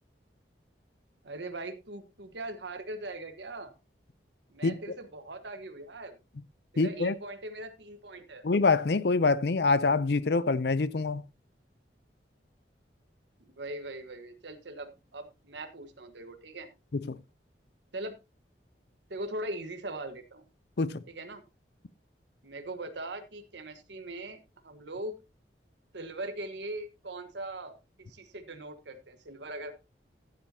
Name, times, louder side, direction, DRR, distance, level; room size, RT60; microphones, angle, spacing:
voice 1, 1.2-3.7 4.5-6.2 6.7-8.4 13.4-16.7 17.9-18.1 19.1-20.4 21.1-21.4 22.4-25.1 25.9-27.7 28.1-29.7, right 2 dB, 80° right, 1.4 m, -40 dB
voice 2, 6.8-7.1 8.4-11.2 17.1-17.2 20.8-21.0, left 3 dB, 65° left, 0.5 m, -25 dB
14.5 x 8.8 x 2.8 m
head